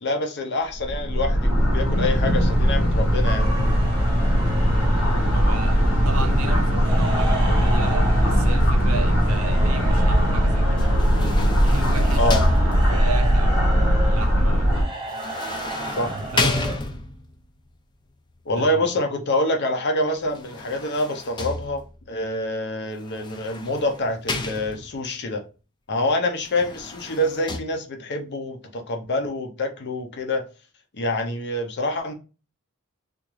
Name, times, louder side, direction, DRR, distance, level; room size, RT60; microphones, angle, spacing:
voice 1, 0.0-3.5 12.2-12.4 15.9-16.1 18.5-21.8 22.1-25.4 25.9-30.4 30.9-32.1, left 1 dB, 50° left, 0.7 m, -26 dB
sound 1, 0.8-14.8, equal, 85° left, 1.3 m, -19 dB
sound 2, 3.2-16.8, right 1 dB, 20° right, 0.8 m, -34 dB
voice 2, 5.3-10.8 11.6-14.7 16.0-16.8 18.5-18.9, right 3 dB, 75° right, 0.6 m, -34 dB
sound 3, 10.8-13.2 15.1-17.4 20.2-22.1 23.1-25.1 26.4-27.6, left 3 dB, 20° left, 0.4 m, -31 dB
3.5 x 2.5 x 3.1 m
head